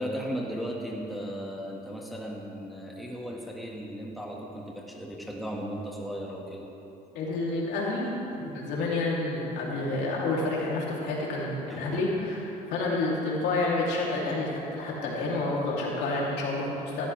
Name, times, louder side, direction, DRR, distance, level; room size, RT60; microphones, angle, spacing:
voice 1, 0.0-6.6 11.7-12.0, equal, ahead, -3 dB, 1.9 m, -36 dB
voice 2, 7.1-17.1, left 2 dB, 85° left, -4 dB, 3.2 m, -29 dB
17.5 x 13.0 x 3.5 m, 2.9 s
cardioid pair, 110°, 17 cm